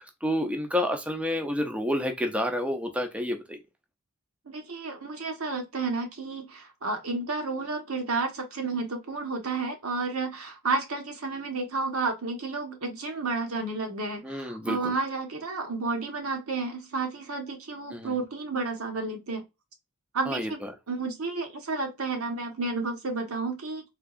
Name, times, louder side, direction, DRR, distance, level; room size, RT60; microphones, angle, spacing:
voice 1, 0.2-3.6 14.2-14.9 17.9-18.1 20.3-20.7, left 1 dB, 5° right, 0.4 m, -29 dB
voice 2, 4.5-19.4 20.1-20.6 20.9-23.8, right 3 dB, 80° right, 1.1 m, -31 dB
3.5 x 2.8 x 2.4 m
head